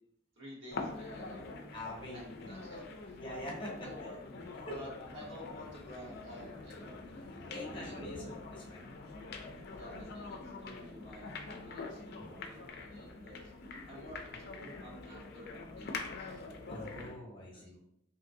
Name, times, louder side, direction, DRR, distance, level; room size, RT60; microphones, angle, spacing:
voice 1, 0.4-1.5 2.1-3.2 3.8-4.2 4.7-7.0 7.8-8.0 8.2-8.4 9.7-13.5 13.9-16.4 17.5-17.8, equal, 75° right, -5 dB, 1.3 m, -51 dB
sound 1, 0.7-17.2, left 3 dB, 55° left, 0.4 m, -45 dB
voice 2, 1.7-2.5 3.2-3.9 4.6-4.7 7.5-8.9 12.2-12.3 16.7-17.8, left 1 dB, 25° left, -2 dB, 0.9 m, -44 dB
sound 2, 3.1-8.3, right 1 dB, 25° right, 0.6 m, -55 dB
3.7 x 2.8 x 2.6 m, 0.77 s
head